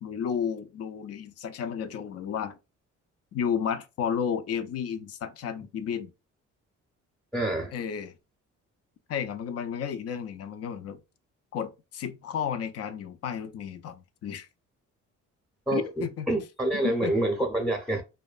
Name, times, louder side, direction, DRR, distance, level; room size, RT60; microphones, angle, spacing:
voice 1, 0.0-2.6 3.3-6.1 7.7-8.1 9.1-11.0 11.5-14.5 15.7-16.3 16.7-17.1, left 7 dB, 55° left, 0.5 m, -32 dB
voice 2, 7.3-7.7 15.7-18.0, right 1 dB, ahead, 0.7 m, -27 dB
2.6 x 2.2 x 2.4 m
cardioid pair, 90°, 30 cm